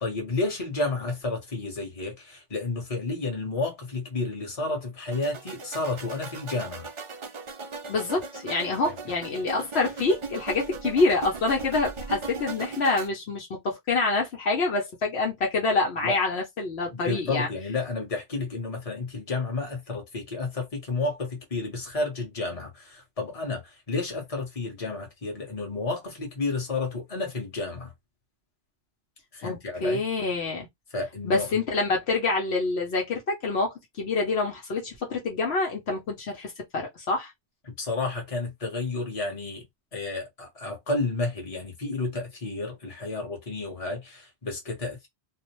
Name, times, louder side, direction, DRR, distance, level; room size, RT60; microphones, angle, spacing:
voice 1, 0.0-6.9 16.0-16.2 16.9-27.9 29.3-30.0 30.9-31.6 37.6-39.6 39.9-45.1, left 3 dB, 35° left, 1.2 m, -31 dB
sound 1, 5.1-13.1, right 4 dB, 45° right, 0.4 m, -38 dB
voice 2, 7.9-17.5 29.4-30.7 31.2-37.3, left 3 dB, 70° left, 1.0 m, -26 dB
2.6 x 2.0 x 3.0 m
omnidirectional pair, 1.1 m